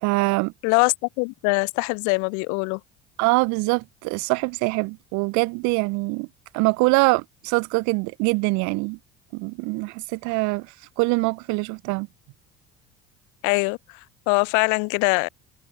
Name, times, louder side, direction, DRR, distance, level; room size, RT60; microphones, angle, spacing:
voice 1, 0.0-0.5 3.2-6.3 6.5-9.0 9.3-12.1, right 26 dB, 55° right, 0.7 m, -23 dB
voice 2, 0.6-2.8 13.4-15.3, left 33 dB, 55° left, 0.6 m, -23 dB
figure-of-eight pair, 60°, 36 cm